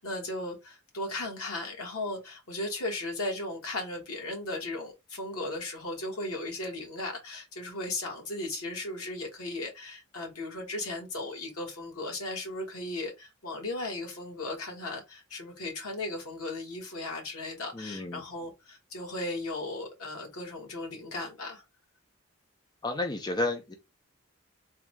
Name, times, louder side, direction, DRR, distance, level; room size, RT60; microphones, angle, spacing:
voice 1, 0.0-21.6, left 2 dB, 90° left, 1.4 m, -36 dB
voice 2, 17.7-18.2 22.8-23.8, left 2 dB, 20° left, 0.4 m, -31 dB
3.5 x 2.3 x 3.1 m
head